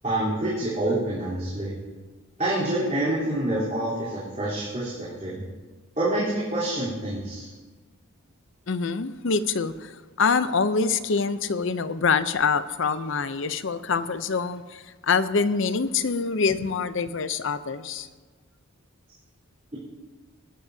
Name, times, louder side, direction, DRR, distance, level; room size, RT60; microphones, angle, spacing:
voice 1, 0.0-1.7 2.4-4.9 5.2-5.4 6.0-7.5, right 1 dB, 30° right, -10 dB, 3.6 m, -27 dB
voice 2, 8.7-9.9 10.2-18.1, left 5 dB, 60° left, 13 dB, 0.6 m, -25 dB
20.5 x 12.0 x 2.8 m, 1.3 s
head